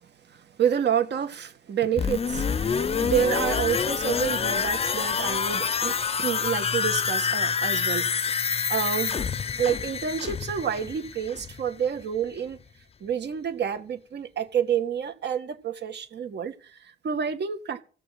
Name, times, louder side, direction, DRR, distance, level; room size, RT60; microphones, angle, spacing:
voice 1, 0.3-9.2 9.6-12.6 13.0-17.8, right 8 dB, 60° right, 2.0 m, -29 dB
sound 1, 2.0-11.7 12.0-12.1, left 6 dB, 30° left, 0.6 m, -27 dB
17.0 x 6.8 x 7.5 m
cardioid pair, 90°, 20 cm